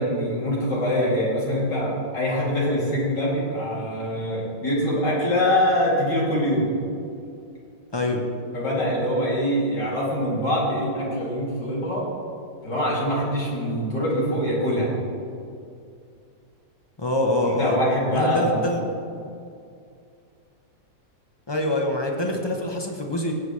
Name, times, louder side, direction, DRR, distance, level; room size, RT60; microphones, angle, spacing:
voice 1, 0.0-6.7 8.5-12.0 12.6-14.9 17.5-18.7, equal, 70° left, -6 dB, 3.4 m, -24 dB
voice 2, 7.9-8.2 17.0-17.8 18.1-18.8 21.5-23.3, left 1 dB, 35° left, 2 dB, 0.4 m, -25 dB
16.5 x 8.1 x 3.2 m, 2.4 s
omnidirectional pair, 2.0 m